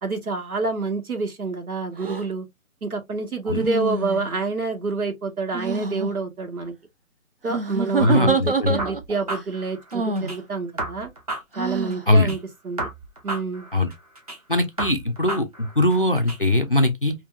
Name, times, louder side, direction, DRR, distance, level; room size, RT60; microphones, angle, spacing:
voice 1, 0.0-2.5 2.8-6.7 7.4-11.1 11.6-12.4 12.6-12.9 13.2-13.7, right 4 dB, 85° right, 1.6 m, -27 dB
sound 1, 2.0-2.2 3.5-4.4 5.5-6.1 7.5-9.2 9.9-10.4 11.6-12.0, right 3 dB, 40° right, 0.5 m, -26 dB
voice 2, 8.0-8.8 12.1-12.3 13.7-13.9 14.5-17.1, left 1 dB, 40° left, 0.4 m, -21 dB
sound 2, 8.8-10.4 10.8-12.4 12.8-14.4 14.8-16.4, right 2 dB, 25° right, 1.0 m, -33 dB
5.2 x 2.7 x 2.3 m
hypercardioid pair, 170°, 42 cm